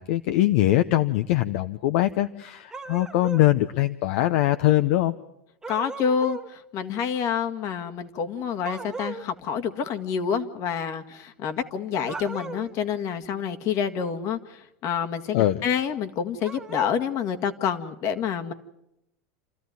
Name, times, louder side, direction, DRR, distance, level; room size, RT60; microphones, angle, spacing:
voice 1, 0.0-5.1 15.3-15.6, left 15 dB, 70° left, 10 dB, 0.8 m, -22 dB
sound 1, 2.7-3.5 5.6-6.5 8.6-9.3 12.0-12.8 16.4-17.0, right 4 dB, 10° right, 1.2 m, -37 dB
voice 2, 5.7-18.5, left 7 dB, 50° left, 7 dB, 1.8 m, -28 dB
28.5 x 13.5 x 9.4 m, 0.87 s
supercardioid pair, 115°, 7 cm